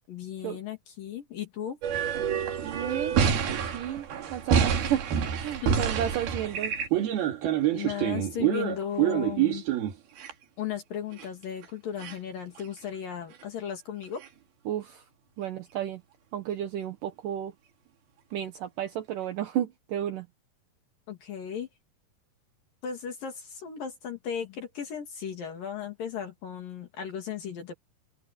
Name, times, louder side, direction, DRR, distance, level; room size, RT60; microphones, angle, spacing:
voice 1, 0.1-1.8 5.6-5.8 6.1-6.2 7.7-9.7 10.6-14.2 21.1-21.7 22.8-27.7, left 8 dB, 65° left, 4.2 m, -36 dB
sound 1, 1.8-10.3 11.2-11.3 11.6-11.7 12.0-12.2 12.6-12.7 14.2-14.3, right 9 dB, 85° right, 4.4 m, -27 dB
voice 2, 2.6-3.2 3.5-6.7 14.7-15.0 15.4-16.0 16.3-17.5 18.3-20.3, right 10 dB, 70° right, 2.7 m, -32 dB
open air
omnidirectional pair, 4.3 m